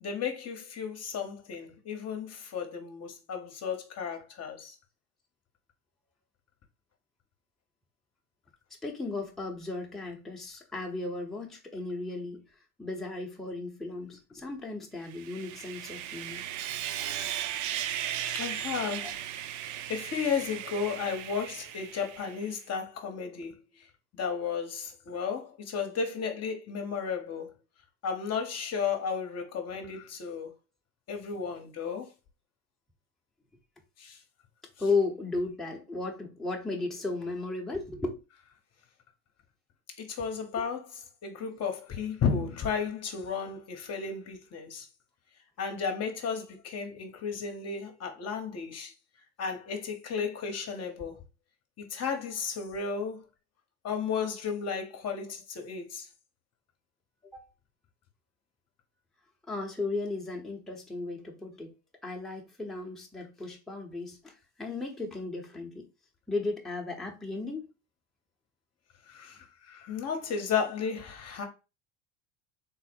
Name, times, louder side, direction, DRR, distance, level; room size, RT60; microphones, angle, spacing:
voice 1, 0.0-4.7 18.3-19.1 19.6-23.6 24.1-27.5 28.0-30.5 31.1-32.1 34.0-34.2 40.0-40.9 41.2-44.9 45.6-48.9 49.4-51.2 51.8-53.2 53.8-56.1 69.1-71.4, left 6 dB, 40° left, 0.9 m, -34 dB
voice 2, 8.8-12.4 12.8-16.5 19.0-19.1 34.8-38.2 40.6-40.7 57.2-57.4 59.5-61.7 62.0-65.8 66.3-67.6, left 3 dB, ahead, 0.9 m, -35 dB
Sawing, 15.1-22.5, right 11 dB, 50° right, 0.5 m, -36 dB
3.9 x 2.1 x 4.2 m
supercardioid pair, 90°, 41 cm